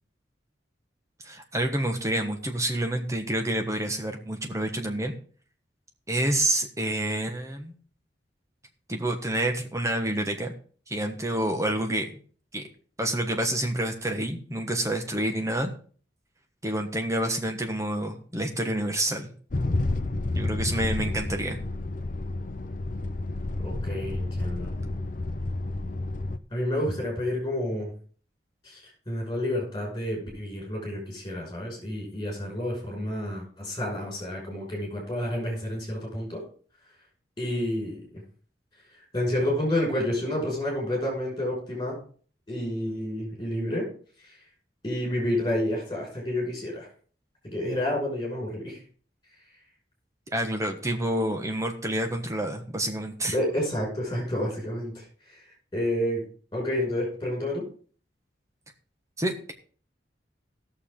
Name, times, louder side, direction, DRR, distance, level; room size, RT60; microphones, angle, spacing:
voice 1, 1.2-5.2 6.1-7.7 8.9-10.5 10.9-12.2 12.5-12.6 13.0-15.7 16.6-19.3 20.3-21.6 50.3-53.3 59.2-59.5, right 1 dB, 15° right, 4 dB, 1.3 m, -28 dB
sound 1, 19.5-26.4, left 2 dB, 45° left, 0.6 m, -30 dB
voice 2, 23.6-24.7 26.5-27.9 28.6-36.4 37.4-38.2 39.1-42.0 42.5-43.9 44.2-44.3 44.8-46.9 47.4-48.8 53.3-55.4 55.7-56.2 56.5-57.7, left 1 dB, 20° left, -2 dB, 5.6 m, -29 dB
17.0 x 6.9 x 3.8 m, 0.43 s
head